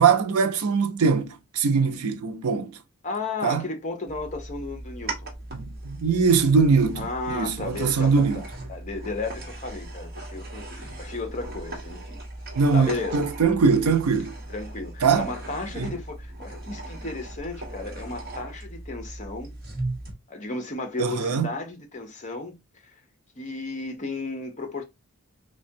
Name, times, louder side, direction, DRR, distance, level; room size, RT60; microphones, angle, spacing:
voice 1, 0.0-2.8 3.4-3.6 5.5-8.4 12.6-14.3 15.0-15.3 15.8-15.9 21.0-21.5, right 5 dB, 85° right, 0.5 m, -22 dB
voice 2, 3.0-5.3 7.0-8.4 8.7-12.2 12.7-13.2 14.5-19.5 20.3-22.6 22.8-23.0 23.4-24.8, left 3 dB, 35° left, 0.7 m, -34 dB
sound 1, 4.1-20.1, right 1 dB, 45° right, 1.1 m, -38 dB
3.3 x 2.2 x 2.6 m
head